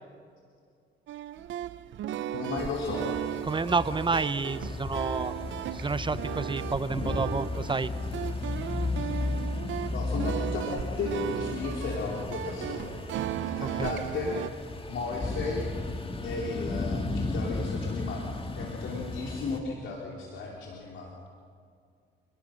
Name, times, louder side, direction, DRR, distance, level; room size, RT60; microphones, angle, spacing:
sound 1, 1.1-14.5, right 12 dB, 70° right, 0.7 m, -36 dB
voice 1, 2.3-3.1 9.9-13.0 13.4-14.3 14.9-16.0 16.2-18.2 18.6-21.1, left 4 dB, 75° left, -2 dB, 3.5 m, -35 dB
sound 2, 2.6-19.6, left 2 dB, 25° left, 1.9 m, -35 dB
voice 2, 3.4-5.3 5.7-7.9 13.6-13.9, right 4 dB, 25° right, 14 dB, 0.8 m, -29 dB
27.0 x 19.5 x 6.5 m, 2.2 s
cardioid pair, 90°, 20 cm